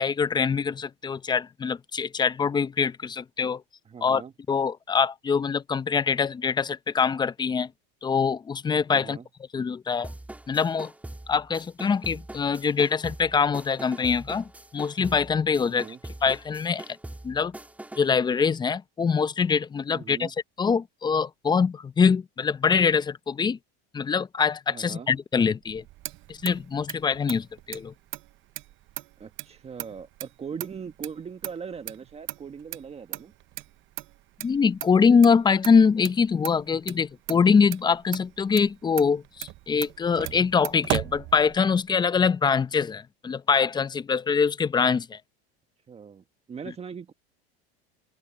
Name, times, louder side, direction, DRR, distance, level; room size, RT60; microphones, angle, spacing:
voice 1, 0.0-3.6 4.0-4.2 4.5-7.7 8.0-9.2 9.5-10.1 10.5-10.9 11.3-15.9 16.2-16.8 17.2-17.5 18.0-23.6 23.9-25.8 26.3-27.9 34.4-45.2, left 5 dB, 15° left, 0.6 m, -24 dB
voice 2, 3.9-4.3 8.9-9.3 15.6-16.0 19.9-20.3 24.7-25.1 29.2-33.3 45.9-47.1, right 6 dB, 20° right, 1.6 m, -40 dB
sound 1, 10.0-18.2, right 1 dB, 5° right, 3.1 m, -42 dB
Motor vehicle (road), 25.6-41.9, right 17 dB, 40° right, 0.8 m, -38 dB
open air
supercardioid pair, 125°, 30 cm